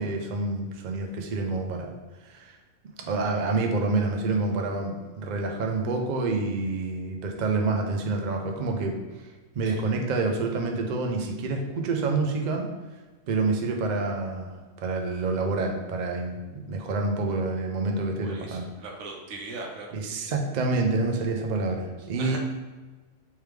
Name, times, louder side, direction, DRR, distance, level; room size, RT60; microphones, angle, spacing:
voice 1, 0.0-1.9 2.2-2.6 3.1-9.3 9.5-12.6 13.3-18.7 19.9-22.4, right 3 dB, 65° right, 2 dB, 0.4 m, -28 dB
voice 2, 18.2-19.9 22.0-22.4, right 3 dB, 85° right, 0 dB, 1.2 m, -40 dB
3.4 x 3.3 x 3.1 m, 1.3 s
omnidirectional pair, 1.4 m